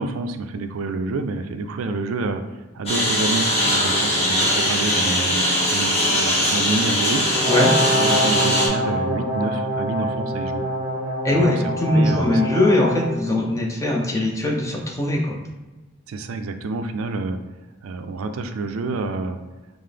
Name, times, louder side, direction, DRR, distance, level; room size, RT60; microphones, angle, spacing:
voice 1, 0.0-2.4 2.7-7.3 7.9-10.6 11.3-12.4 16.1-17.4 17.8-19.4, right 3 dB, 85° right, 8 dB, 0.4 m, -28 dB
Engine, 2.9-8.7, equal, 30° left, 1.1 m, -21 dB
Brass instrument, 7.3-13.2, equal, 20° right, 1.0 m, -25 dB
voice 2, 11.2-15.4, left 1 dB, 15° left, -1 dB, 0.5 m, -20 dB
5.5 x 2.0 x 3.3 m, 1.2 s
head